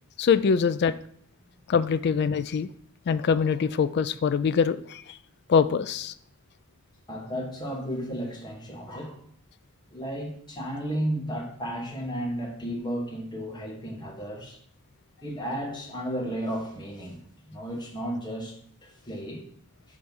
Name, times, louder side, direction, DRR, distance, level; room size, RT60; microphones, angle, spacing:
voice 1, 0.2-0.9 1.7-2.7 3.1-5.2 5.5-6.1, left 6 dB, 50° left, 13 dB, 0.3 m, -23 dB
voice 2, 7.1-9.2 9.9-14.6 15.2-17.2 17.5-18.6 18.8-19.4, equal, 20° left, -2 dB, 1.4 m, -33 dB
6.1 x 3.3 x 5.3 m, 0.62 s
head